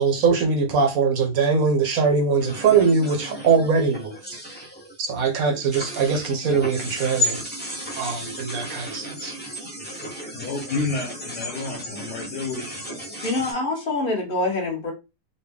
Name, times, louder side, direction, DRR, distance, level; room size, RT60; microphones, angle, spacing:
voice 1, 0.0-4.1 5.0-7.4 8.0-9.3, right 5 dB, 65° right, 1.2 m, -21 dB
sound 1, 2.4-13.5, left 1 dB, 10° left, 0.6 m, -34 dB
voice 2, 10.3-12.9, left 3 dB, 75° left, 1.4 m, -30 dB
voice 3, 13.2-14.9, left 2 dB, 40° left, 1.1 m, -25 dB
4.1 x 2.1 x 3.4 m
omnidirectional pair, 1.7 m